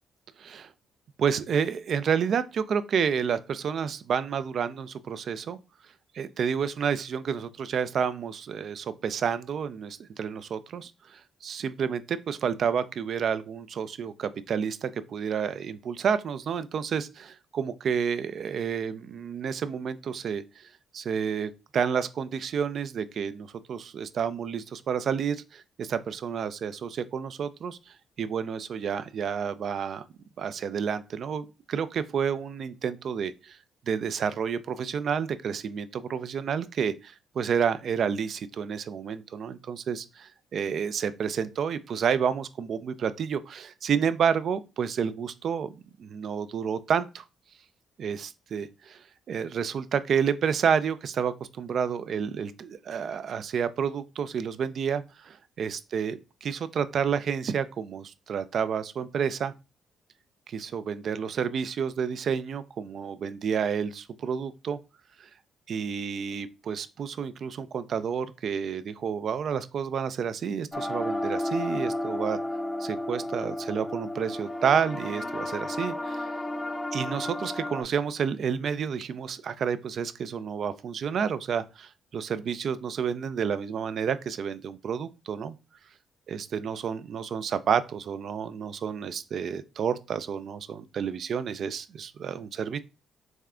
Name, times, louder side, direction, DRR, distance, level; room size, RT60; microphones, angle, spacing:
voice 1, 0.4-0.7 1.2-5.6 6.1-20.6 20.9-30.0 30.4-33.6 33.9-45.7 46.0-47.2 48.0-59.5 60.5-64.8 65.2-65.3 65.7-72.4 72.8-76.3 76.9-85.6 86.3-92.8, right 7 dB, 60° right, 0.4 m, -30 dB
sound 1, 70.7-77.8, left 1 dB, 15° left, 0.4 m, -32 dB
3.5 x 3.2 x 3.6 m
cardioid pair, 90°, 0 cm